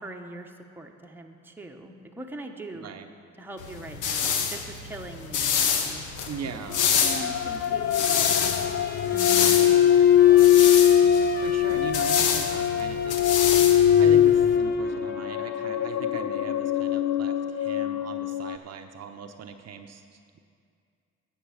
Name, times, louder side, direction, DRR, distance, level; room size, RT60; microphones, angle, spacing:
voice 1, 0.0-2.9 3.4-6.1 7.0-8.6 9.1-10.6, right 2 dB, 5° right, 2 dB, 0.9 m, -42 dB
voice 2, 2.7-3.1 6.3-7.0 11.4-13.3 14.0-20.0, right 7 dB, 55° right, 6 dB, 0.7 m, -39 dB
sound 1, 3.6-14.6, left 6 dB, 85° left, 1.0 m, -28 dB
sound 2, 6.7-18.6, left 10 dB, 65° left, 0.4 m, -21 dB
Trumpet, 6.8-16.0, left 3 dB, 30° left, 1.1 m, -43 dB
10.0 x 7.9 x 6.4 m, 2.3 s
cardioid pair, 90°, 30 cm